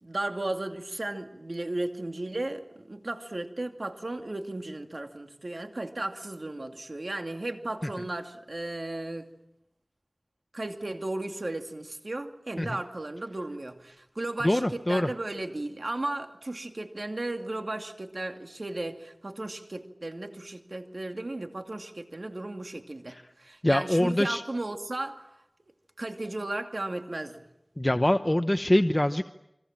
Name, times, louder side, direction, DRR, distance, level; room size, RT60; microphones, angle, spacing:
voice 1, 0.0-9.3 10.5-25.2 26.0-27.4, right 2 dB, 60° right, 5 dB, 2.4 m, -35 dB
voice 2, 14.4-15.1 23.1-23.2 23.6-24.4 27.8-29.3, left 1 dB, 25° left, 8 dB, 0.9 m, -24 dB
29.0 x 24.5 x 7.5 m, 0.87 s
wide cardioid pair, 50°, 0 cm